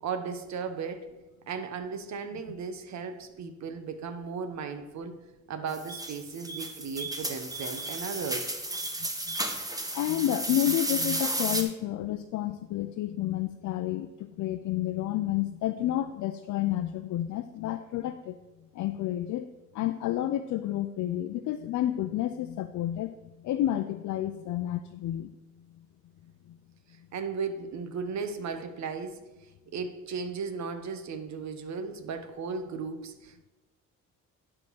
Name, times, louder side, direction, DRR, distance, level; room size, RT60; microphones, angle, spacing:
voice 1, 0.0-1.1 1.5-5.2 5.5-8.5 27.1-29.2 29.7-33.5, right 5 dB, 65° right, 9 dB, 1.0 m, -36 dB
sound 1, 5.7-11.6, right 1 dB, 10° right, 1.1 m, -33 dB
voice 2, 9.0-9.4 9.9-18.4 18.7-19.5 19.7-25.3 26.5-26.6, left 13 dB, 70° left, 8 dB, 0.5 m, -30 dB
11.0 x 3.8 x 6.2 m, 1.1 s
cardioid pair, 90°, 30 cm